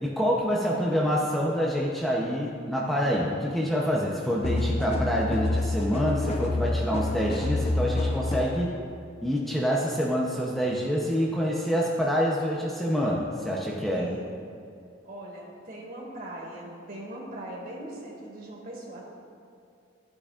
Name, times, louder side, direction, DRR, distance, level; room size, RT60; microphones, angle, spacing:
voice 1, 0.0-8.7 9.2-14.1, equal, ahead, -4 dB, 0.7 m, -26 dB
sound 1, 4.4-8.6, left 2 dB, 35° left, 0.7 m, -28 dB
voice 2, 13.9-14.3 15.0-19.0, right 1 dB, 50° right, -3 dB, 2.1 m, -40 dB
13.5 x 8.6 x 2.5 m, 2.5 s
head